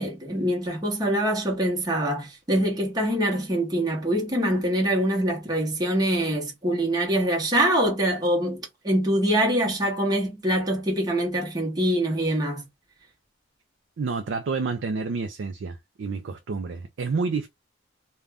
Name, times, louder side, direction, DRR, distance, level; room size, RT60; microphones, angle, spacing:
voice 1, 0.0-12.6, right 1 dB, 20° right, 0.9 m, -24 dB
voice 2, 14.0-17.5, right 4 dB, 60° right, 0.4 m, -29 dB
2.5 x 2.2 x 3.3 m
head